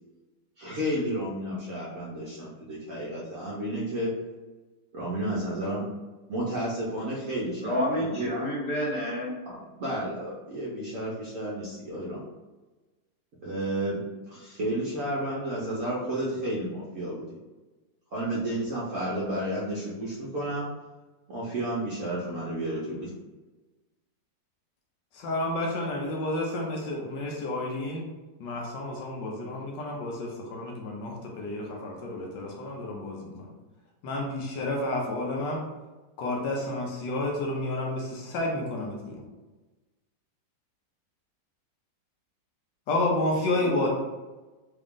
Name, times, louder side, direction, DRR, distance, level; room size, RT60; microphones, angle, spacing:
voice 1, 0.6-4.1 4.9-5.9 6.3-8.3 9.4-12.2 13.4-17.3 18.1-20.6 21.3-23.1, right 1 dB, 60° right, -6 dB, 0.9 m, -32 dB
voice 2, 7.6-9.3 43.6-43.8, equal, 20° left, -8 dB, 1.3 m, -29 dB
voice 3, 25.1-28.1 28.4-33.5 34.0-35.6 36.2-39.2 42.9-43.9, left 2 dB, 80° left, -1 dB, 1.4 m, -30 dB
3.8 x 2.4 x 3.5 m, 1.2 s
omnidirectional pair, 2.0 m